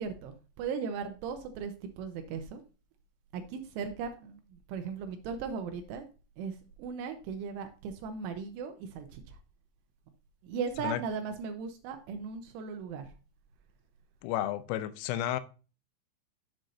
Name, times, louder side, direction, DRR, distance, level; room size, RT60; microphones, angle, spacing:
voice 1, 0.0-2.6 3.3-6.1 6.4-9.4 10.4-13.1, right 6 dB, 85° right, 3.0 m, -37 dB
voice 2, 14.2-15.4, left 13 dB, 90° left, 3.3 m, -32 dB
9.2 x 7.5 x 2.6 m
omnidirectional pair, 6.0 m